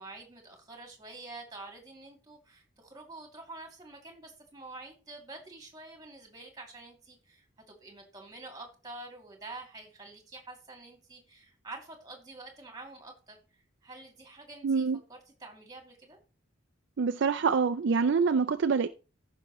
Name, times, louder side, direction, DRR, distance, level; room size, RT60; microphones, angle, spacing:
voice 1, 0.0-16.2, right 2 dB, 20° right, 2.5 m, -47 dB
voice 2, 14.6-15.0 17.0-18.9, right 5 dB, 60° right, 0.4 m, -26 dB
15.0 x 5.9 x 3.1 m
head